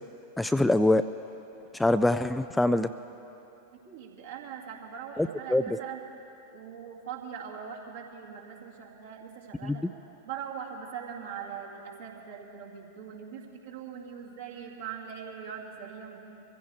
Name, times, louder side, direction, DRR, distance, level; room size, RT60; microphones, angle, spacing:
voice 1, 0.4-1.0 1.8-2.9 5.2-5.6 9.6-9.8, left 2 dB, 5° left, 11 dB, 0.3 m, -24 dB
voice 2, 3.8-6.0 6.5-9.8 10.2-16.2, right 7 dB, 60° right, -2 dB, 2.4 m, -41 dB
24.5 x 15.5 x 3.5 m, 2.9 s
figure-of-eight pair, 90°, 0 cm